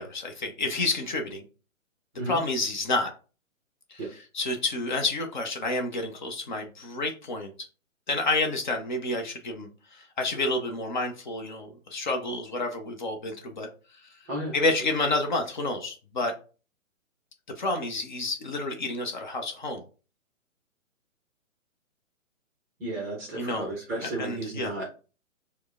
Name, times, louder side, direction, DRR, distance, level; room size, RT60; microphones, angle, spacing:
voice 1, 0.0-1.4 2.3-3.1 3.9-4.0 4.3-7.7 8.1-14.0 14.5-16.3 17.6-19.8 23.3-23.7 24.0-24.7, left 2 dB, 35° left, 5 dB, 0.6 m, -29 dB
voice 2, 22.8-25.0, right 1 dB, 10° right, -2 dB, 0.5 m, -33 dB
4.5 x 2.0 x 3.5 m, 0.36 s
figure-of-eight pair, 135°, 40 cm